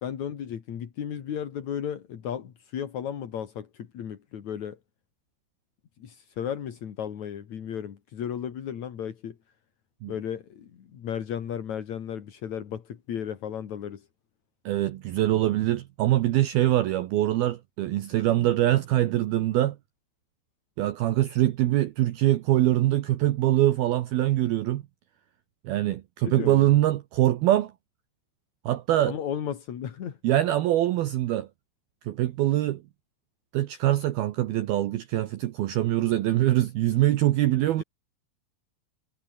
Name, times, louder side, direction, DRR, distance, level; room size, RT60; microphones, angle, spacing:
voice 1, 0.0-4.8 6.0-9.4 10.1-14.1 26.2-26.7 29.1-30.2 37.8-37.9, left 9 dB, 50° left, 2.6 m, -34 dB
voice 2, 14.7-19.8 20.8-24.8 25.6-27.7 28.7-29.2 30.2-31.5 32.0-32.8 33.5-37.8, right 14 dB, 75° right, 2.3 m, -23 dB
omnidirectional pair, 5.7 m